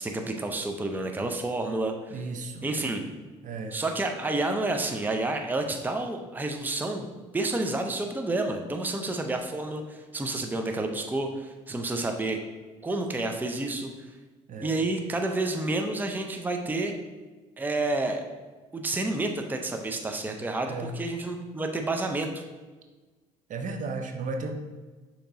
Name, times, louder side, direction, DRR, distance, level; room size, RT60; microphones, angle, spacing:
voice 1, 0.0-2.1 2.6-3.0 3.7-7.1 7.3-12.4 12.8-13.9 14.6-16.9 17.6-18.2 18.7-22.4, right 2 dB, 10° right, 4 dB, 0.5 m, -29 dB
voice 2, 2.1-2.7 3.4-3.8 14.5-14.8 20.7-20.9 23.5-24.5, right 3 dB, 50° right, 4 dB, 0.6 m, -34 dB
6.6 x 2.9 x 2.6 m, 1.3 s
hypercardioid pair, 60°, 17 cm